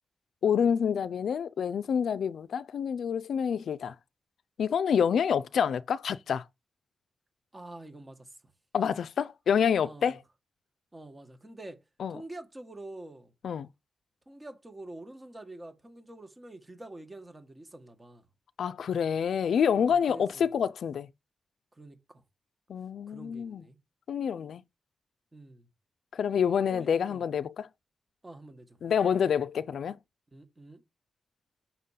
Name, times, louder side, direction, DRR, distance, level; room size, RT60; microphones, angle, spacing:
voice 1, 0.4-3.9 4.6-6.4 8.7-10.2 12.0-12.2 13.4-13.7 18.6-21.1 22.7-23.6 24.1-24.6 26.1-27.7 28.8-30.0, left 7 dB, 85° left, 0.3 m, -27 dB
voice 2, 7.5-8.3 9.8-10.2 10.9-11.8 12.1-13.3 14.3-18.3 19.7-20.5 21.7-22.2 23.1-23.8 25.3-25.7 26.7-27.2 28.2-28.8 30.3-30.8, right 1 dB, 20° right, 1.4 m, -47 dB
5.9 x 3.8 x 5.6 m
wide cardioid pair, 110°, 0 cm